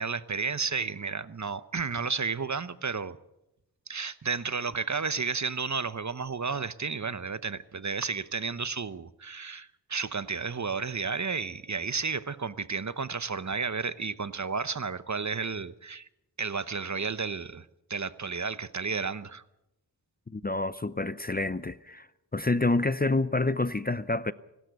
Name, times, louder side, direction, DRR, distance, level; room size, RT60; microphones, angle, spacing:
voice 1, 0.0-3.2 3.9-16.1 16.4-19.4, right 5 dB, 40° right, 0.9 m, -32 dB
voice 2, 20.3-22.1 22.3-24.3, left 2 dB, 20° left, 0.6 m, -28 dB
25.0 x 13.0 x 8.1 m
wide cardioid pair, 50°, 42 cm